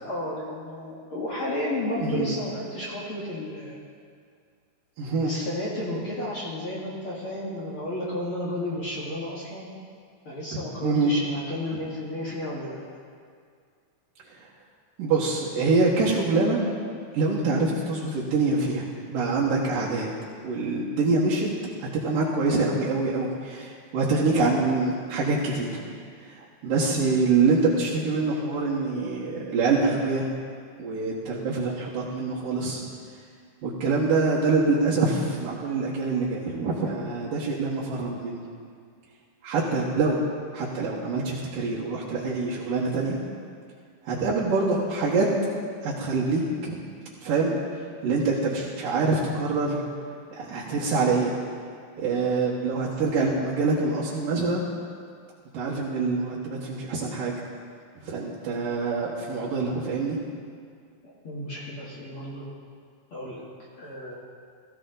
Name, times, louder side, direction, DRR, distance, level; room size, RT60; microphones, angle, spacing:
voice 1, 0.0-3.8 5.2-9.7 10.3-12.8 61.0-62.5 63.1-63.4 63.8-64.2, left 1 dB, 45° left, -6 dB, 2.4 m, -32 dB
voice 2, 2.0-2.3 5.0-5.3 10.5-11.1 14.3-14.5 15.0-16.6 17.1-20.1 20.4-21.5 21.8-25.8 26.2-30.3 30.8-32.8 33.6-38.4 39.4-40.2 40.5-43.2 44.0-45.3 45.8-46.8 47.2-47.6 48.0-49.8 50.4-51.3 52.0-54.6 55.5-57.3 58.0-60.2, right 3 dB, 80° right, -7 dB, 3.0 m, -25 dB
16.5 x 15.0 x 3.9 m, 2.2 s
omnidirectional pair, 3.9 m